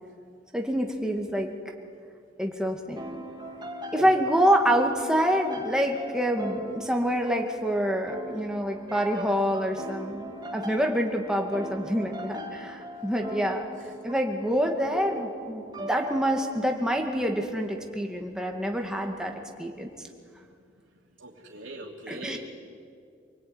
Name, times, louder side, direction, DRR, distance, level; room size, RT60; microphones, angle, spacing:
voice 1, 0.5-1.5 2.4-3.0 3.9-13.7 14.0-19.9 22.1-22.4, equal, 5° right, 2 dB, 2.2 m, -26 dB
sound 1, 3.0-16.6, equal, 20° right, 2.1 m, -40 dB
voice 2, 21.2-22.4, right 2 dB, 75° right, -5 dB, 3.0 m, -40 dB
27.5 x 19.5 x 9.7 m, 2.4 s
head